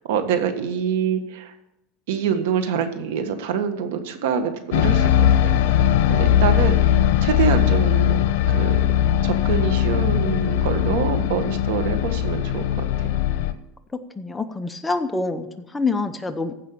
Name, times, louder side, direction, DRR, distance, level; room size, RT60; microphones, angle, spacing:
voice 1, 0.1-1.5 2.1-5.8 6.1-8.2 8.5-8.7 9.2-12.6 13.0-13.1, right 7 dB, 80° right, 8 dB, 1.6 m, -25 dB
sound 1, 4.7-13.5, left 10 dB, 80° left, 0.9 m, -19 dB
voice 2, 13.9-16.5, left 3 dB, 10° left, 7 dB, 0.8 m, -27 dB
15.0 x 5.5 x 8.6 m, 0.89 s
supercardioid pair, 140°, 0 cm